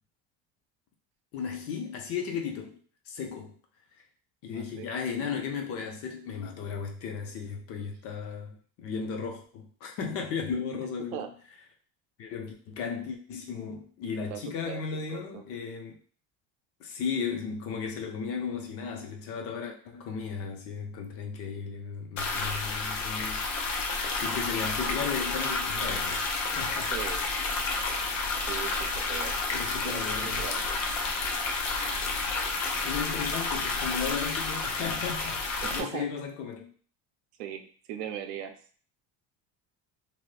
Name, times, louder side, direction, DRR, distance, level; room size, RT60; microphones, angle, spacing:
voice 1, 1.3-3.6 4.4-11.3 12.2-16.0 16.8-23.4 24.1-26.2 26.6-26.9 29.5-30.5 32.8-36.7, left 6 dB, 45° left, 2 dB, 0.5 m, -35 dB
voice 2, 4.5-4.9 11.1-11.3 14.3-14.8 15.1-15.4 26.9-27.2 28.5-30.6 35.6-36.1 37.4-38.6, right 10 dB, 80° right, 6 dB, 0.6 m, -39 dB
sound 1, 22.2-35.8, left 3 dB, 90° left, 0.7 m, -30 dB
2.7 x 2.5 x 3.1 m, 0.44 s
cardioid pair, 175°, 33 cm